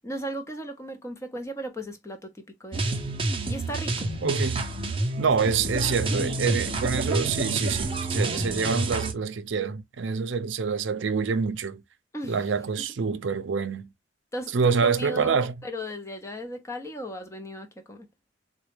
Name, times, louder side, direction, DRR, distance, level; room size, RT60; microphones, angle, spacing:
voice 1, 0.0-3.0 3.5-4.1 5.5-5.7 12.1-12.4 14.3-18.1, equal, 15° left, 0.6 m, -36 dB
sound 1, 2.7-9.1, right 2 dB, 25° right, 0.6 m, -28 dB
voice 2, 4.2-4.6 5.2-11.8 12.3-13.9 14.5-15.5, right 5 dB, 70° right, 0.5 m, -26 dB
3.9 x 2.2 x 3.1 m
head